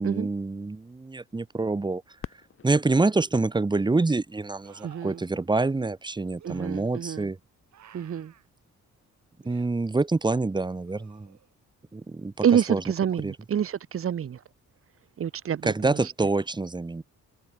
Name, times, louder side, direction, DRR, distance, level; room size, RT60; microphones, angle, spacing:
voice 1, 0.0-2.0 2.6-7.4 9.4-11.4 11.9-12.8 13.2-13.3 15.6-17.0, right 3 dB, 15° right, 1.1 m, -26 dB
Fireworks, 2.2-4.9 5.6-5.7 6.4-6.9 8.8-8.9, left 7 dB, 45° left, 2.4 m, -47 dB
sound 1, 4.6-5.3 6.4-6.7 7.7-8.5 9.4-9.7 10.9-11.5 14.7-14.8, right 10 dB, 65° right, 6.1 m, -54 dB
voice 2, 4.8-5.2 6.4-7.3 7.9-8.3 12.4-14.4 15.2-16.0, right 8 dB, 45° right, 1.4 m, -27 dB
open air
cardioid pair, 120°, 30 cm